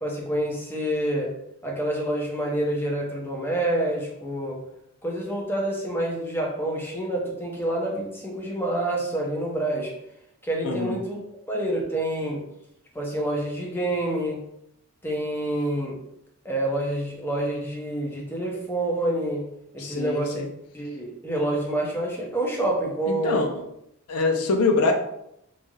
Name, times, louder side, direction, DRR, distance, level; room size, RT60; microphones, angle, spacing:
voice 1, 0.0-1.3 1.6-4.6 5.0-9.9 10.4-11.2 11.5-12.4 12.9-14.4 15.0-16.0 16.4-19.5 19.7-20.4 20.7-23.4, right 1 dB, 10° left, -2 dB, 0.5 m, -27 dB
voice 2, 10.6-11.0 19.8-20.5 23.2-23.5 24.1-24.9, left 3 dB, 80° left, 4 dB, 0.5 m, -24 dB
3.1 x 2.4 x 2.6 m, 0.79 s
head